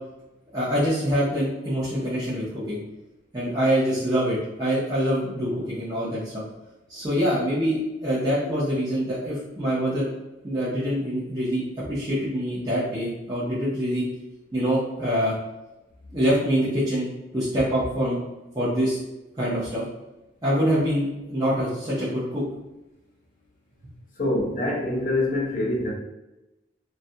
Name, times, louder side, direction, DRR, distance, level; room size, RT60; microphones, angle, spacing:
voice 1, 0.5-2.8 3.3-6.4 6.9-10.1 10.4-14.0 14.5-15.3 16.1-18.2 18.5-19.0 19.3-19.8 20.4-22.4, equal, 20° right, -10 dB, 0.6 m, -25 dB
voice 2, 24.2-25.9, left 2 dB, 45° left, -2 dB, 0.6 m, -25 dB
2.3 x 2.1 x 2.6 m, 1.0 s
head